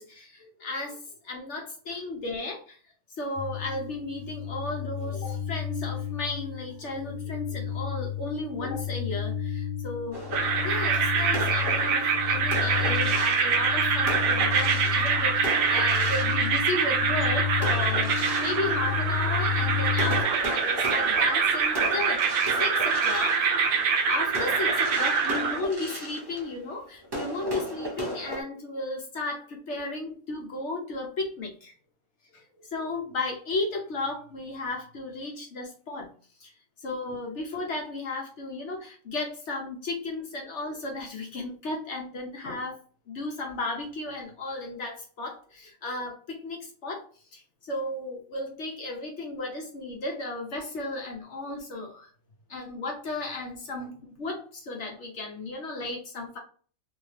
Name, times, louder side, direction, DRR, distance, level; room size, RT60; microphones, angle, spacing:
voice 1, 0.0-2.8 3.2-31.8 32.3-36.1 36.4-36.5 36.8-42.8 43.1-52.1 52.5-56.4, left 2 dB, 60° left, 1 dB, 0.9 m, -34 dB
sound 1, 3.4-20.2, left 8 dB, 80° left, 0.5 m, -32 dB
sound 2, 10.1-17.0 17.6-19.6 19.9-28.4, equal, 25° right, 0.6 m, -36 dB
sound 3, 10.3-25.6, right 5 dB, 80° right, 1.1 m, -25 dB
2.7 x 2.6 x 3.1 m, 0.42 s
omnidirectional pair, 1.5 m